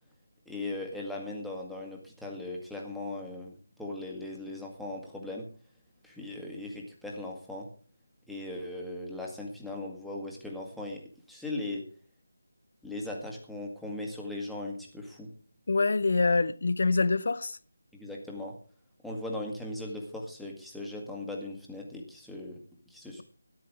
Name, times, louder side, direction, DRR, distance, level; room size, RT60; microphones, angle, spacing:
voice 1, 0.5-5.5 6.0-7.7 8.3-11.0 11.3-11.8 12.8-15.3 17.9-18.6 19.0-23.2, left 2 dB, ahead, 1.8 m, -38 dB
voice 2, 15.7-17.6, left 3 dB, 50° left, 0.6 m, -25 dB
14.0 x 10.5 x 4.8 m
figure-of-eight pair, 160°, 0 cm